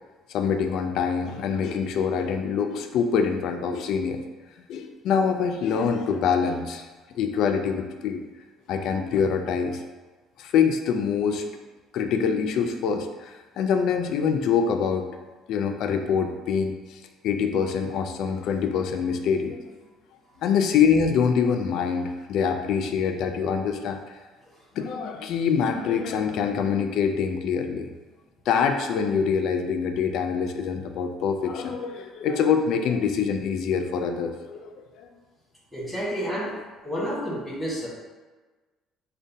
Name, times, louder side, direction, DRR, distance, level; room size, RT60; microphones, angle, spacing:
voice 1, 0.3-4.2 4.7-6.9 7.1-8.2 8.7-9.8 10.4-11.4 11.9-15.1 15.5-17.0 17.2-19.6 20.4-24.0 24.8-27.9 28.5-34.7 35.0-35.1, left 6 dB, 50° left, 6 dB, 0.3 m, -25 dB
voice 2, 35.7-36.5 36.8-37.9, equal, 10° right, -9 dB, 1.3 m, -30 dB
6.2 x 2.2 x 2.7 m, 1.3 s
cardioid pair, 180°, 0 cm